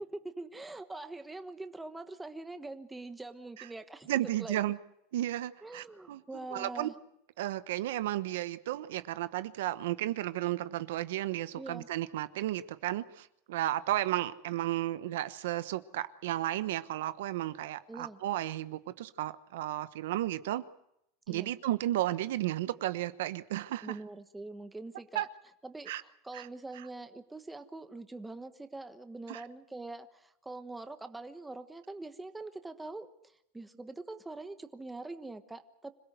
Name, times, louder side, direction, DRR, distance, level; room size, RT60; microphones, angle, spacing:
voice 1, 0.0-4.6 5.6-6.9 11.6-11.9 17.9-18.2 21.3-21.5 23.8-25.3 25.6-33.1 33.5-35.9, right 2 dB, 5° right, 9 dB, 1.2 m, -44 dB
voice 2, 4.1-4.8 5.1-6.2 6.5-6.9 7.4-20.6 21.3-24.0 25.1-25.2 25.9-26.0 26.3-26.5 29.3-29.4, right 14 dB, 80° right, 14 dB, 1.0 m, -33 dB
26.5 x 17.0 x 8.0 m, 0.78 s
supercardioid pair, 155°, 0 cm